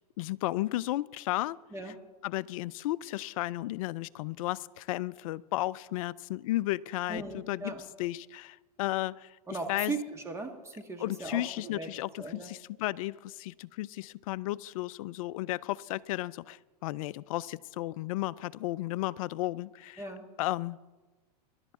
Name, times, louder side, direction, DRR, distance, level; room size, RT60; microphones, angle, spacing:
voice 1, 0.2-1.6 2.2-7.7 8.0-9.3 9.7-9.9 11.0-20.0 20.4-20.8, left 17 dB, 60° left, 19 dB, 0.5 m, -34 dB
voice 2, 7.1-7.8 9.5-11.9 12.2-12.5 20.0-20.3, right 3 dB, 15° right, 4 dB, 1.6 m, -38 dB
23.5 x 11.5 x 3.7 m, 1.2 s
hypercardioid pair, 115°, 20 cm